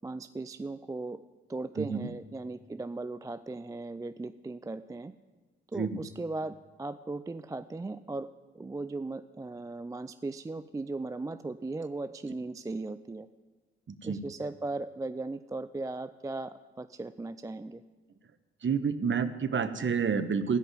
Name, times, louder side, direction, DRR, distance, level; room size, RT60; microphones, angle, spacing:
voice 1, 0.0-1.2 1.5-5.1 5.7-8.3 8.5-13.3 14.0-17.8, right 2 dB, 10° right, 12 dB, 0.4 m, -37 dB
voice 2, 1.8-2.1 5.7-6.0 13.9-14.2 18.6-20.6, right 6 dB, 40° right, 11 dB, 1.1 m, -29 dB
14.5 x 5.4 x 9.3 m, 1.3 s
hypercardioid pair, 45°, 32 cm